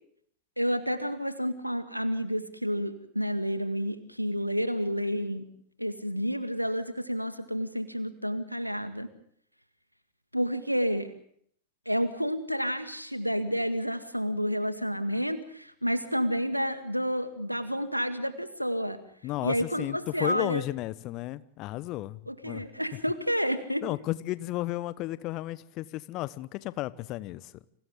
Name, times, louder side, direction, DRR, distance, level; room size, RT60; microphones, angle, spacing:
voice 1, 0.6-5.5 5.8-9.1 10.3-11.1 11.9-19.0 19.4-20.6 22.3-23.9, equal, 90° right, 10 dB, 2.0 m, -30 dB
voice 2, 19.2-22.7 23.8-27.5, left 17 dB, 40° left, 17 dB, 1.0 m, -33 dB
30.0 x 26.5 x 3.8 m, 0.65 s
figure-of-eight pair, 90°, 0 cm